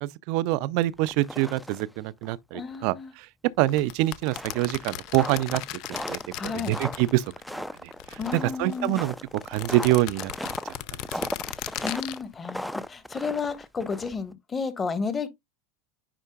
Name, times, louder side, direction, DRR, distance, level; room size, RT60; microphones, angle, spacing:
voice 1, 0.0-3.3 3.6-5.6 5.9-7.2 7.5-9.2 9.5-10.3 10.6-11.3, right 17 dB, 60° right, 0.4 m, -26 dB
sound 1, 0.9-2.0 2.2-2.3 2.7-2.8 3.6-14.3, equal, 5° left, 0.4 m, -37 dB
voice 2, 2.5-3.1 6.3-6.8 8.2-9.0 11.8-15.3, left 5 dB, 25° left, 1.4 m, -32 dB
sound 2, 3.7-7.5 7.8-8.9 9.4-12.2, left 15 dB, 55° left, 0.5 m, -37 dB
9.8 x 4.4 x 2.3 m
hypercardioid pair, 85°, 0 cm